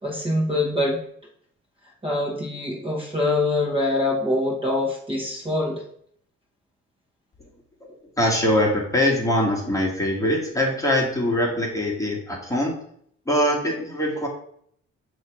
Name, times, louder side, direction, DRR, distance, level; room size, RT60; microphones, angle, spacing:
voice 1, 0.0-1.0 2.0-5.8, left 2 dB, 20° right, -2 dB, 1.5 m, -24 dB
voice 2, 7.8-12.8 13.3-14.3, left 1 dB, 10° left, -2 dB, 1.7 m, -23 dB
6.2 x 3.1 x 4.9 m, 0.65 s
cardioid pair, 90°, 30 cm